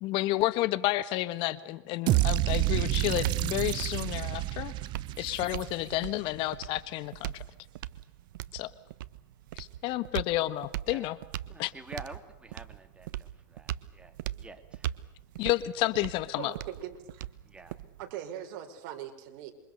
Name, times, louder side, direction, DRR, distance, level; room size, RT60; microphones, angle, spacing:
voice 1, 0.0-4.7 5.2-7.4 8.5-8.7 9.6-11.2 11.6-11.7 15.4-16.5, left 16 dB, 50° left, 15 dB, 1.6 m, -30 dB
sound 1, 2.1-6.2, right 17 dB, 45° right, 0.9 m, -29 dB
sound 2, 2.5-18.1, right 13 dB, 75° right, 1.3 m, -40 dB
voice 2, 11.5-14.9 17.5-17.8, right 1 dB, 10° right, 7 dB, 3.1 m, -48 dB
voice 3, 16.4-17.2 18.0-19.5, right 10 dB, 60° right, 5 dB, 5.1 m, -40 dB
27.5 x 25.0 x 6.8 m, 0.89 s
supercardioid pair, 120°, 11 cm